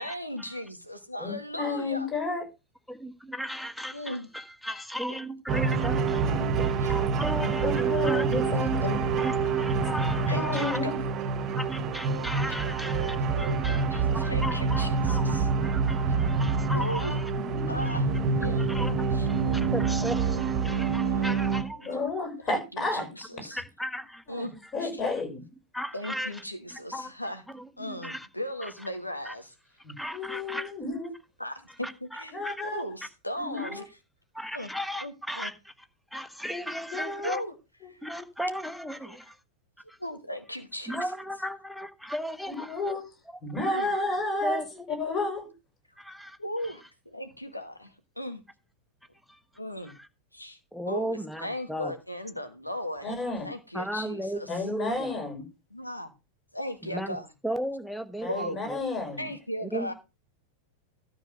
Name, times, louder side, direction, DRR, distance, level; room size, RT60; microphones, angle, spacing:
voice 1, 0.0-2.1 3.9-4.3 6.8-6.9 8.4-9.0 10.3-10.9 12.6-12.7 13.4-15.5 16.7-17.2 17.7-18.1 18.4-18.7 19.1-19.3 21.1-22.0 22.4-23.6 24.3-24.5 24.8-25.0 25.9-27.4 27.8-29.5 31.4-32.4 32.6-33.8 34.5-34.7 35.0-35.5 37.2-37.5 37.9-38.0 39.1-39.2 40.0-41.1 43.7-43.9 46.4-48.4 49.6-50.0 50.3-50.6 50.9-53.1 53.4-54.6 55.7-56.1 56.5-57.3 58.3-58.6 59.2-59.9, equal, 85° left, 2.0 m, -37 dB
voice 2, 1.2-2.4 6.2-6.8 7.4-9.0 10.3-11.0 17.4-17.9 18.3-18.5 21.8-23.1 24.3-24.5 24.7-25.4 29.8-31.1 32.3-32.8 33.4-33.8 36.9-37.3 37.8-37.9 40.9-41.0 42.5-43.1 43.4-44.6 44.9-45.5 53.0-53.5 54.5-55.4 58.2-59.3, left 2 dB, 25° left, 6.3 m, -32 dB
voice 3, 2.9-6.2 6.6-8.5 9.2-10.8 11.6-15.3 15.6-17.3 17.8-18.0 18.6-18.9 19.3-21.9 23.5-24.2 25.7-26.4 26.7-27.1 27.5-28.3 29.2-29.3 30.0-30.7 31.8-32.5 33.6-33.7 34.3-35.5 36.1-37.4 38.0-39.4 39.9-40.0 40.9-42.8 43.5-43.9 44.4-44.7 46.0-46.4 49.3-49.4 49.9-50.0 50.7-51.9 53.7-55.1 56.8-57.2 57.4-58.8 59.6-59.9, equal, ahead, 1.3 m, -36 dB
sound 1, 5.5-21.6, right 5 dB, 30° right, 1.6 m, -27 dB
13.0 x 4.6 x 6.4 m
figure-of-eight pair, 90°, 0 cm